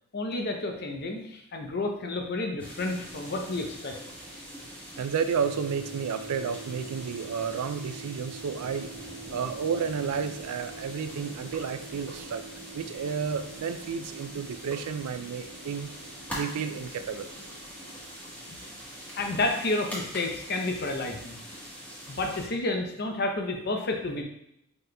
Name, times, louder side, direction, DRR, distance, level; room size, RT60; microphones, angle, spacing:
voice 1, 0.1-3.9 18.5-18.6 19.2-21.4 22.1-24.2, left 2 dB, 45° left, 3 dB, 0.6 m, -30 dB
sound 1, 2.6-22.5, equal, 5° left, 1.3 m, -43 dB
voice 2, 5.0-8.9 9.3-12.4 12.7-15.9 16.3-17.3, right 6 dB, 85° right, 10 dB, 0.4 m, -31 dB
sound 2, 5.3-19.3, right 4 dB, 30° right, 0.7 m, -47 dB
4.9 x 4.1 x 2.2 m, 0.78 s
head